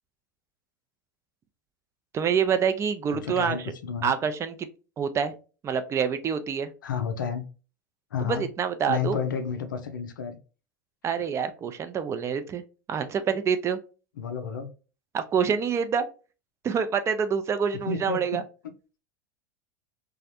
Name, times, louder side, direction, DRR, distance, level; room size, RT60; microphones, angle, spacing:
voice 1, 2.1-3.7 4.0-4.5 5.0-5.3 5.6-6.7 8.2-9.2 11.0-12.6 12.9-13.8 15.1-16.1 16.6-18.4, right 7 dB, 25° right, 0.4 m, -26 dB
voice 2, 3.1-4.1 6.8-7.5 8.1-8.4 8.9-10.4 14.2-14.7 17.9-18.4, left 6 dB, 85° left, 0.4 m, -31 dB
2.4 x 2.0 x 2.7 m
hypercardioid pair, 90°, 10 cm